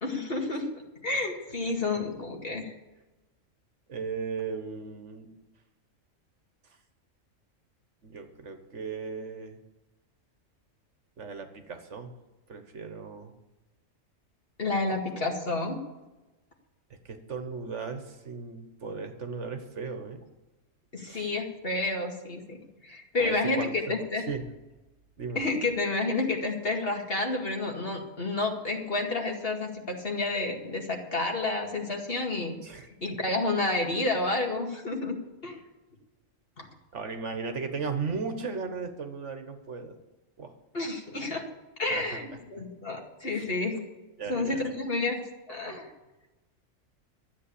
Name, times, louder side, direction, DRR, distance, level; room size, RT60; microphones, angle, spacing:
voice 1, 0.0-0.7 1.0-2.7 14.6-15.8 20.9-22.6 22.8-24.2 25.3-32.6 33.0-35.2 35.4-35.6 36.6-36.7 40.7-41.4 41.8-43.8 44.3-45.2 45.5-45.9, left 2 dB, 45° left, 1 dB, 2.3 m, -30 dB
voice 2, 3.9-5.3 8.0-9.6 11.2-12.1 12.5-13.3 17.0-20.2 21.0-21.3 23.2-24.0 24.3-24.5 25.2-25.4 32.6-32.9 36.9-40.0 40.4-40.5 41.9-42.2 43.3-43.5 44.2-44.6, right 5 dB, 65° right, 7 dB, 1.6 m, -36 dB
13.0 x 8.3 x 8.4 m, 1.1 s
omnidirectional pair, 1.4 m